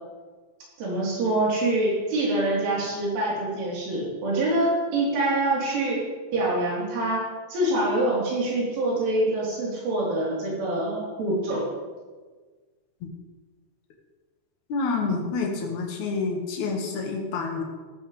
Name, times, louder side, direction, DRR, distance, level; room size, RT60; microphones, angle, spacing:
voice 1, 0.8-6.0 6.3-11.7, right 1 dB, 75° right, -5 dB, 6.4 m, -25 dB
voice 2, 14.7-17.6, left 4 dB, 55° left, 0 dB, 2.3 m, -28 dB
16.0 x 13.5 x 3.4 m, 1.4 s
omnidirectional pair, 5.7 m